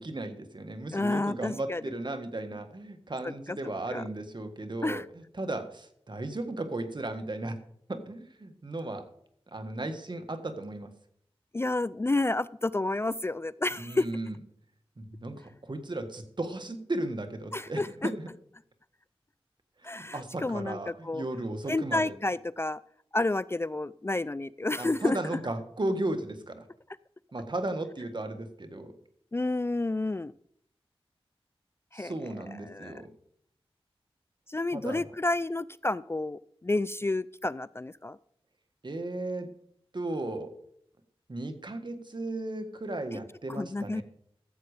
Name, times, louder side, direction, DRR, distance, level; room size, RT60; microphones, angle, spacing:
voice 1, 0.0-7.6 7.9-9.1 9.5-10.9 13.8-14.4 15.0-18.3 19.8-22.1 24.8-26.7 27.3-28.9 31.9-33.1 34.7-35.1 38.8-39.5 39.9-40.5 41.3-44.0, right 2 dB, 50° right, 7 dB, 1.6 m, -35 dB
voice 2, 0.9-1.8 3.9-4.0 4.8-5.0 11.5-14.1 17.5-18.1 19.8-20.8 21.0-21.2 21.7-22.8 23.1-25.2 29.3-30.3 31.9-32.1 32.7-32.9 34.5-38.2 43.5-44.0, left 2 dB, 25° left, 18 dB, 0.3 m, -30 dB
14.0 x 7.8 x 5.0 m, 0.68 s
cardioid pair, 45°, 10 cm